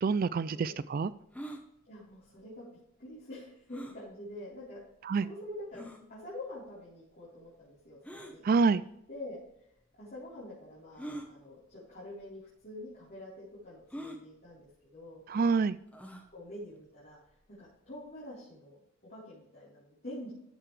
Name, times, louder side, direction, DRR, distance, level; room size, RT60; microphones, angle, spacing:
voice 1, 0.0-1.1 5.1-5.3 8.4-8.8 15.3-15.8, right 4 dB, 45° right, 16 dB, 0.3 m, -27 dB
sound 1, 1.3-1.6 3.7-4.0 4.8-4.9 5.7-6.0 8.0-8.4 9.4-9.5 11.0-11.3 12.2-12.4 12.6-12.7 13.9-14.2 15.9-16.3, right 1 dB, 5° left, 1.1 m, -43 dB
voice 2, 1.9-2.6 3.0-4.8 5.2-5.8 6.1-8.4 9.1-9.4 10.0-15.2 16.3-17.2 17.6-18.8 19.1-20.3, left 1 dB, 45° left, -9 dB, 4.1 m, -46 dB
13.5 x 6.8 x 3.3 m, 0.77 s
head